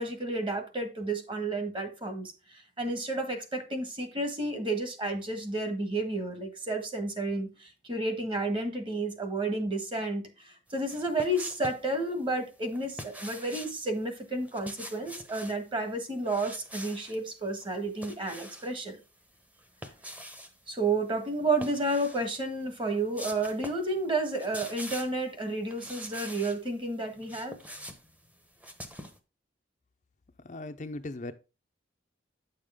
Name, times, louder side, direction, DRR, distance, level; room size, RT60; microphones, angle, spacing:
voice 1, 0.0-19.0 20.7-27.6, right 2 dB, 25° right, 1.5 m, -31 dB
sound 1, 10.8-11.9 12.7-13.8 14.4-15.6 16.2-17.2 17.6-18.8 19.6-20.5 21.5-22.3 22.7-22.8 23.1-23.9 24.2-25.2 25.7-26.6 27.0-29.2, equal, 10° right, 0.9 m, -44 dB
voice 2, 30.4-31.3, left 2 dB, 40° left, 0.6 m, -38 dB
9.7 x 6.7 x 3.6 m
head